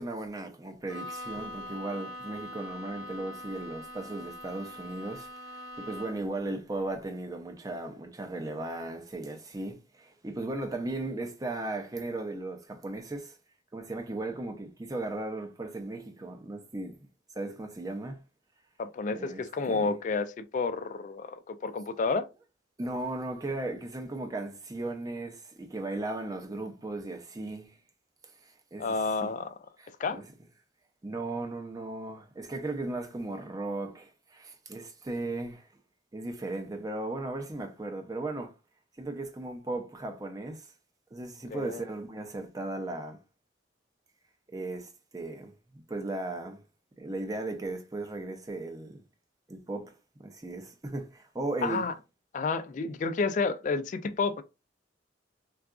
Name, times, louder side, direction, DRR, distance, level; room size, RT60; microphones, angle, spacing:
voice 1, 0.0-13.4 13.7-17.0 17.3-18.2 19.1-19.9 22.8-27.8 28.4-29.3 29.8-30.2 31.0-35.7 36.1-38.6 39.0-40.7 41.1-43.2 44.5-46.6 47.0-49.0 49.5-49.9 50.2-51.9, right 2 dB, 20° right, 0.5 m, -36 dB
Bowed string instrument, 0.9-6.4, left 1 dB, 85° right, 0.7 m, -43 dB
voice 2, 18.8-22.2 28.8-29.6 30.0-30.2 41.5-41.8 51.6-51.9 52.3-54.4, left 4 dB, 40° left, 0.3 m, -30 dB
3.7 x 2.3 x 2.3 m
head